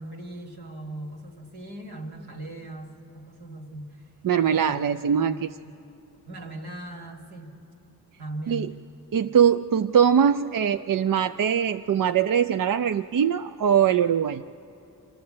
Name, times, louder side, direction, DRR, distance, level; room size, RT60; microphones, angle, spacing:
voice 1, 0.0-4.1 4.4-4.8 5.1-5.8 6.3-7.5 8.2-8.8, right 1 dB, 80° right, 1 dB, 2.1 m, -39 dB
voice 2, 4.2-5.5 8.5-8.7 9.1-14.4, right 8 dB, 60° right, 9 dB, 0.5 m, -22 dB
23.5 x 14.0 x 8.6 m, 2.8 s
cardioid pair, 55°, 38 cm